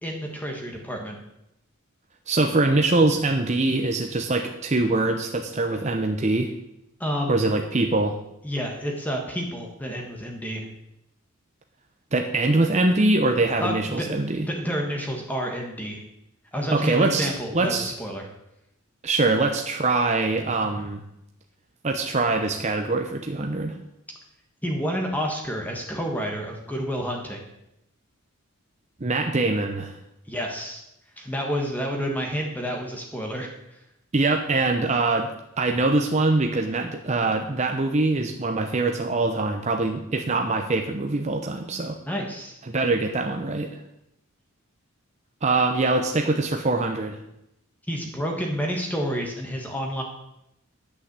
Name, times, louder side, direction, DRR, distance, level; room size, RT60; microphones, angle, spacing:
voice 1, 0.0-1.2 7.0-7.5 8.4-10.7 13.6-16.0 16.5-18.2 24.6-27.5 30.3-30.8 31.2-33.8 42.1-42.6 47.9-50.0, equal, 5° left, 1 dB, 1.4 m, -29 dB
voice 2, 2.3-6.5 7.3-8.2 12.1-14.5 16.7-17.9 19.0-21.0 21.8-23.8 29.0-29.9 34.1-35.3 35.6-42.0 42.7-43.7 45.4-47.2, right 2 dB, 30° right, 4 dB, 0.7 m, -23 dB
10.5 x 6.1 x 8.1 m, 0.84 s
head